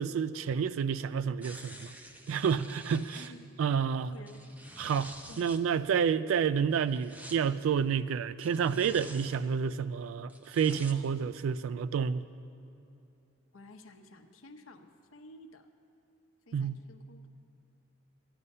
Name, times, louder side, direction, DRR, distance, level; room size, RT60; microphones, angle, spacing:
voice 1, 0.0-1.9 2.3-3.3 3.6-4.1 4.8-12.2 16.5-16.8, right 7 dB, 85° right, 14 dB, 0.3 m, -29 dB
sound 1, 1.4-3.3 4.1-5.6 6.7-7.4 8.4-9.4 10.3-11.0 11.6-11.7, right 1 dB, 10° right, 0.6 m, -49 dB
voice 2, 3.1-3.5 4.0-4.4 5.3-5.5 13.5-15.7 16.5-17.2, left 1 dB, 90° left, 6 dB, 0.8 m, -52 dB
12.5 x 11.5 x 5.4 m, 2.7 s
head